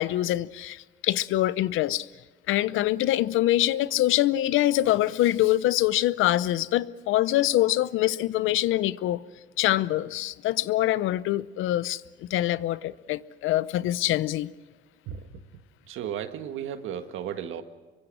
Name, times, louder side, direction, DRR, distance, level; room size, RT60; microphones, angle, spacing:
voice 1, 0.0-2.1 2.5-9.2 9.6-12.0 12.3-14.5, left 14 dB, 90° left, 0.7 m, -24 dB
voice 2, 15.1-15.4 15.9-17.6, right 9 dB, 85° right, 1.7 m, -34 dB
26.5 x 23.5 x 6.3 m
cardioid pair, 90°, 20 cm